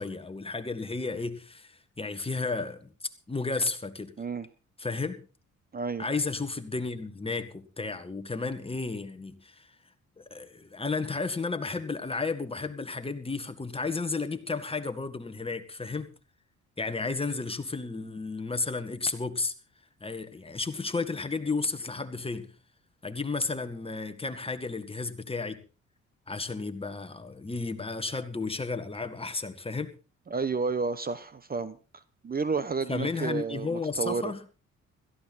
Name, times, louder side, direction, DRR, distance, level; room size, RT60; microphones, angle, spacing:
voice 1, 0.0-2.9 3.3-4.1 4.8-5.2 6.0-9.7 10.2-16.1 16.8-19.5 20.0-22.5 23.0-25.6 26.3-29.9 32.9-34.4, left 3 dB, 20° left, 1.8 m, -33 dB
voice 2, 5.7-6.1 30.3-31.8 32.2-34.3, right 4 dB, 30° right, 1.0 m, -31 dB
17.0 x 14.5 x 4.2 m
cardioid pair, 90°, 30 cm